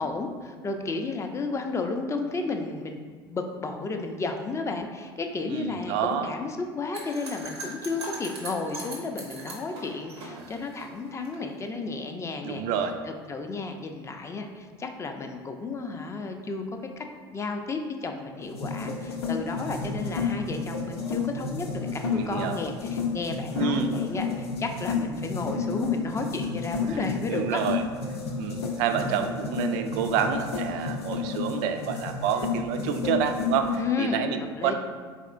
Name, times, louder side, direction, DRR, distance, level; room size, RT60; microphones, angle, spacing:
voice 1, 0.0-3.0 3.3-12.6 13.0-16.6 17.0-17.1 17.3-27.6 33.8-34.7, left 3 dB, 20° left, 5 dB, 0.4 m, -33 dB
voice 2, 5.5-6.3 12.4-13.0 22.1-22.6 23.5-24.0 26.9-27.0 27.2-27.8 28.4-34.7, right 7 dB, 60° right, 7 dB, 0.4 m, -28 dB
sound 1, 6.9-11.4, right 2 dB, 85° right, 0.9 m, -40 dB
sound 2, 18.4-33.8, left 4 dB, 85° left, 0.5 m, -31 dB
4.2 x 3.5 x 2.4 m, 1.5 s
hypercardioid pair, 75°, 13 cm